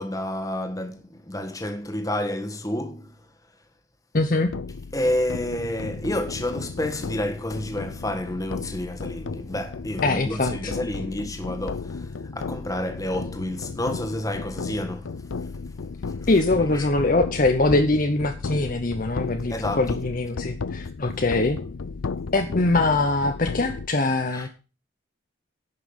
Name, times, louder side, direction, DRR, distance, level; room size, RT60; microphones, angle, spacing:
voice 1, 0.0-3.1 4.9-15.1 16.0-16.1 16.7-16.9 19.5-20.0 24.3-24.5, left 1 dB, 15° left, 1.4 m, -29 dB
voice 2, 4.1-4.5 10.0-10.7 16.3-21.6 22.3-24.5, left 2 dB, 40° left, 0.8 m, -23 dB
sound 1, 4.5-23.9, left 4 dB, 85° left, 0.5 m, -34 dB
11.0 x 5.8 x 7.0 m
head